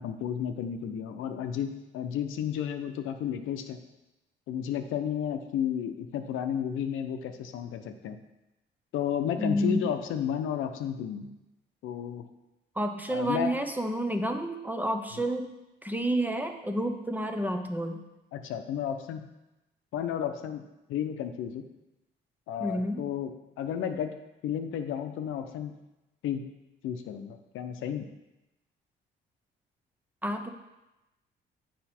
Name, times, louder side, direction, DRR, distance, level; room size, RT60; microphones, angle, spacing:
voice 1, 0.0-3.8 4.5-8.2 8.9-11.3 11.8-12.2 13.1-13.5 18.3-19.2 19.9-20.6 20.9-21.6 22.5-23.3 23.6-24.1 24.4-25.7 26.2-26.5 26.8-28.1, left 9 dB, 85° left, 7 dB, 0.7 m, -32 dB
voice 2, 9.4-9.9 12.8-15.5 15.8-18.0 22.6-23.1 30.2-30.5, equal, 10° right, 6 dB, 0.7 m, -30 dB
8.0 x 5.1 x 4.3 m, 0.99 s
cardioid pair, 90°, 20 cm